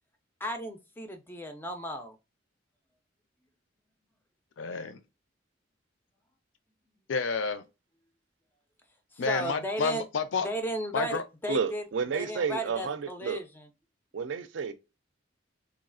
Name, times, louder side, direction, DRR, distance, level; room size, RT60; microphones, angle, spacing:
voice 1, 0.4-2.2 9.1-10.1 10.4-11.8 12.1-13.7, right 1 dB, 10° left, 0.3 m, -35 dB
voice 2, 4.6-5.0 7.1-7.6 9.2-10.5 10.9-11.2, left 4 dB, 75° left, 0.4 m, -30 dB
voice 3, 11.5-13.4 14.1-14.7, right 6 dB, 70° right, 0.4 m, -31 dB
3.0 x 2.3 x 2.4 m
head